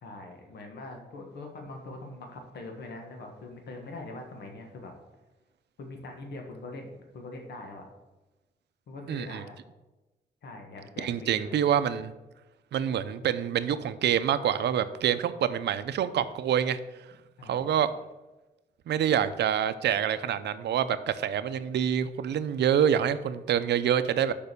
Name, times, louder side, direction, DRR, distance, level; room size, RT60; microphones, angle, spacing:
voice 1, 0.0-4.9 5.8-7.9 8.9-9.6 10.4-11.6 17.4-17.7, left 2 dB, 75° left, 2 dB, 1.5 m, -42 dB
voice 2, 9.1-9.4 11.0-12.1 12.7-16.8 17.5-17.9 18.9-24.3, right 9 dB, 80° right, 13 dB, 0.5 m, -26 dB
6.7 x 5.4 x 6.8 m, 1.1 s
wide cardioid pair, 160°, 17 cm